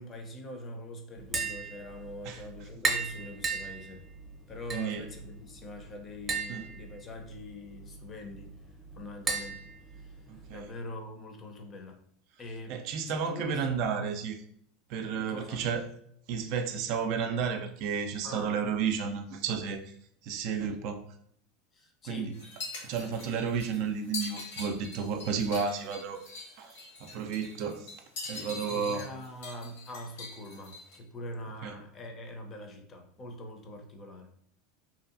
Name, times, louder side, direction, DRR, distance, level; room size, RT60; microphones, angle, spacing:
voice 1, 0.0-4.1 4.5-8.5 8.9-10.2 10.5-12.1 12.4-12.8 13.1-14.1 15.1-15.7 18.2-18.5 21.7-22.4 28.3-34.3, left 1 dB, 30° left, 4 dB, 0.6 m, -43 dB
Tap, 1.2-10.6, right 4 dB, 25° right, 0.7 m, -37 dB
voice 2, 4.7-5.0 6.5-6.6 10.3-10.7 12.7-14.3 14.9-15.8 16.3-19.9 20.2-21.0 22.1-22.3 22.8-26.2 26.6-27.9 28.3-29.0 31.6-31.8, right 6 dB, 60° right, 6 dB, 0.3 m, -32 dB
sound 1, 22.3-31.0, left 3 dB, 80° left, 1.2 m, -43 dB
2.7 x 2.3 x 2.5 m, 0.67 s
supercardioid pair, 115°, 0 cm